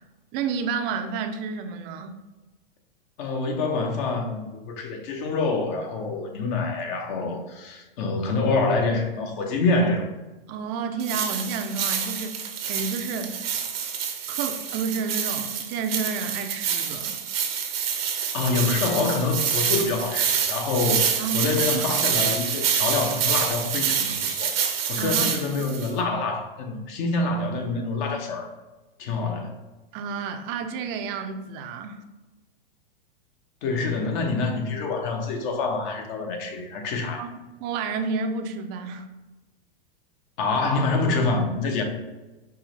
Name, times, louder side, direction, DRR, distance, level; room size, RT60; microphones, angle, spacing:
voice 1, 0.3-2.2 10.5-13.3 14.3-17.2 21.2-21.9 25.0-25.3 29.9-32.0 37.2-37.3 37.6-39.1, right 5 dB, 35° right, 6 dB, 0.4 m, -30 dB
voice 2, 3.2-10.1 18.3-24.5 24.9-28.5 29.0-29.6 33.6-37.2 40.4-41.8, left 3 dB, 50° left, 3 dB, 0.9 m, -26 dB
sound 1, 11.0-25.9, right 8 dB, 75° right, 0.8 m, -27 dB
4.7 x 2.9 x 3.2 m, 1.1 s
hypercardioid pair, 120°, 29 cm